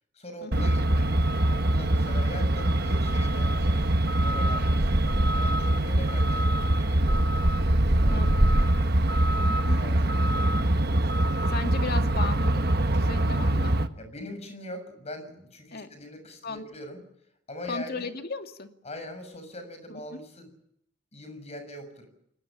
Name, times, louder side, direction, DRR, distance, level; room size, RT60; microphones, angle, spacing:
voice 1, 0.1-1.2 1.5-9.2 9.7-11.3 14.0-17.0 17.5-18.1 18.8-20.5 21.1-22.1, left 1 dB, 35° left, 8 dB, 6.7 m, -42 dB
Truck, 0.5-13.9, right 1 dB, 55° right, 1.4 m, -23 dB
voice 2, 8.1-8.6 9.3-9.8 11.5-12.6 12.9-13.8 15.7-15.9 16.4-16.6 17.7-18.7 19.9-20.2, left 3 dB, 55° left, 6 dB, 2.2 m, -36 dB
29.5 x 19.5 x 7.5 m, 0.73 s
head